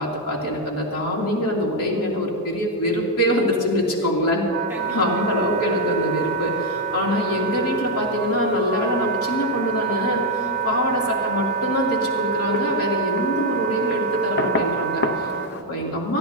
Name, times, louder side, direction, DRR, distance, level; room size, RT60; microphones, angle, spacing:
voice 1, 0.0-4.5 4.9-10.2 10.6-15.0 15.7-16.2, left 1 dB, 90° left, -2 dB, 2.6 m, -24 dB
Wind instrument woodwind instrument, 3.9-15.5, right 8 dB, 40° right, 0.4 m, -27 dB
voice 2, 4.0-5.4 10.3-11.0 15.2-15.7, equal, 10° right, -3 dB, 1.4 m, -40 dB
Fireworks, 4.7-15.6, left 2 dB, 50° left, 0.7 m, -35 dB
27.0 x 10.0 x 2.7 m, 2.4 s
head